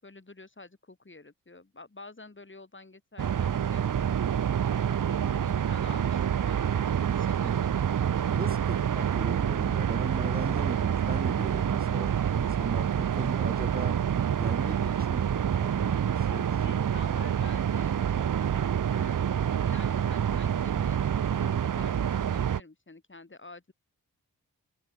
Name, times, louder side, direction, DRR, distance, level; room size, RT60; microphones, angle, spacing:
voice 1, 0.0-4.1 5.0-7.7 8.3-8.5 16.5-18.3 18.9-23.7, left 3 dB, 35° left, 7.2 m, -49 dB
sound 1, 3.2-22.6, right 9 dB, 60° right, 0.9 m, -27 dB
voice 2, 8.3-14.0 14.4-16.9, right 2 dB, 25° right, 3.0 m, -38 dB
cardioid pair, 45°, 36 cm